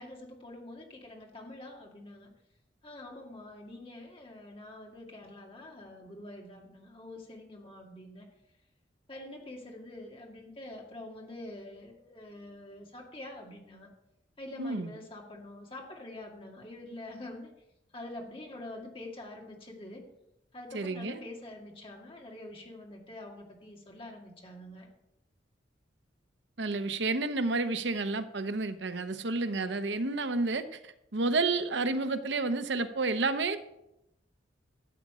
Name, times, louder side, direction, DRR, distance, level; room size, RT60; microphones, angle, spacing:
voice 1, 0.0-2.3 2.8-8.3 9.1-13.9 14.4-17.5 17.9-20.0 20.5-24.9, left 1 dB, 30° left, 0 dB, 2.0 m, -46 dB
voice 2, 14.6-14.9 20.7-21.2 26.6-33.6, right 3 dB, 75° right, 10 dB, 0.8 m, -30 dB
13.0 x 8.5 x 4.9 m, 0.86 s
head